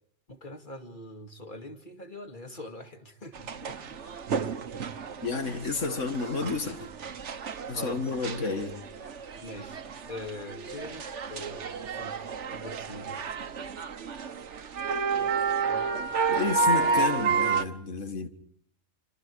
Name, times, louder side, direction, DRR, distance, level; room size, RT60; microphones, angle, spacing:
voice 1, 0.3-3.8 5.3-5.9 7.7-8.1 9.4-9.8 10.1-13.3, left 1 dB, 40° left, 2.6 m, -43 dB
sound 1, 3.3-17.6, right 5 dB, 65° right, 1.4 m, -31 dB
voice 2, 5.2-6.8 7.7-8.8 16.3-18.3, left 4 dB, 70° left, 2.2 m, -31 dB
27.0 x 25.5 x 4.8 m
omnidirectional pair, 1.3 m